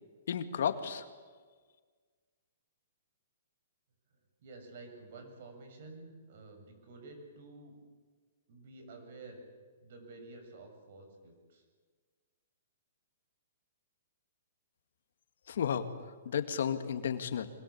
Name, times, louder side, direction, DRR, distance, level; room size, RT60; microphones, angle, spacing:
voice 1, 0.3-1.0 15.5-15.9 16.3-17.5, left 8 dB, 70° left, 9 dB, 2.1 m, -32 dB
voice 2, 4.4-7.8 8.5-9.4 9.8-11.6, right 3 dB, 55° right, 5 dB, 7.5 m, -51 dB
25.0 x 21.5 x 8.6 m, 1.5 s
hypercardioid pair, 155°, 0 cm